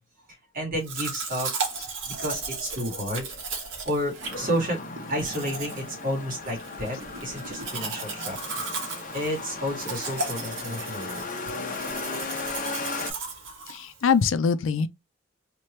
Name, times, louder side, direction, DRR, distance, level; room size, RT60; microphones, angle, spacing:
voice 1, 0.5-1.5 2.1-3.3 3.8-4.8 5.1-8.4 9.1-11.3, equal, 45° right, 2.0 m, -31 dB
Domestic sounds home sounds, 0.8-14.2, right 4 dB, 65° right, 1.2 m, -36 dB
sound 1, 4.2-13.1, left 3 dB, 40° left, 0.8 m, -36 dB
voice 2, 13.7-14.9, left 6 dB, 75° left, 0.4 m, -23 dB
3.2 x 3.1 x 3.0 m
head